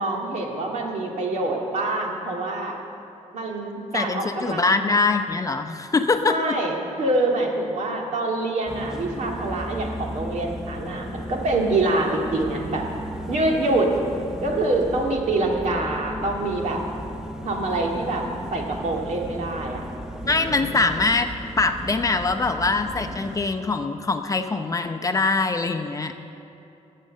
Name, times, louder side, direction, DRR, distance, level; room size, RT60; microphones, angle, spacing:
voice 1, 0.0-2.7 3.3-4.7 6.3-12.9 13.3-14.0 14.4-16.8 17.4-19.8 20.2-20.7, right 2 dB, 70° right, 0 dB, 2.1 m, -25 dB
voice 2, 3.9-6.6 20.2-21.3 21.6-26.1, left 3 dB, 25° left, 7 dB, 0.7 m, -23 dB
sound 1, 8.7-23.4, equal, 5° right, 0.8 m, -35 dB
18.5 x 7.5 x 6.6 m, 2.7 s
cardioid pair, 105°, 13 cm